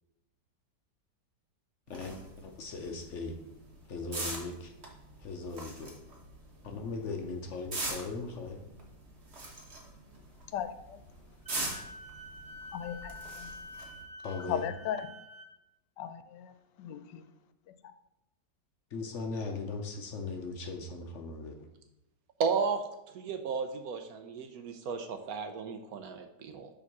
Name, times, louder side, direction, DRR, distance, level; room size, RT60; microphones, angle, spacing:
voice 1, 1.9-3.3 3.9-4.7 5.2-5.9 6.6-8.6 14.2-14.7 18.9-21.7, left 3 dB, 55° left, 4 dB, 0.9 m, -38 dB
sound 1, 1.9-14.0, right 2 dB, 40° right, 1.5 m, -43 dB
voice 2, 10.5-11.0 12.7-13.5 14.5-15.1 16.0-17.2 17.7-17.8, left 9 dB, 90° left, 11 dB, 1.3 m, -37 dB
Wind instrument woodwind instrument, 11.5-15.5, left 1 dB, 5° left, 0.7 m, -47 dB
voice 3, 22.4-22.8 23.1-26.7, right 5 dB, 70° right, 7 dB, 1.0 m, -34 dB
6.8 x 3.6 x 6.0 m, 0.89 s
omnidirectional pair, 1.9 m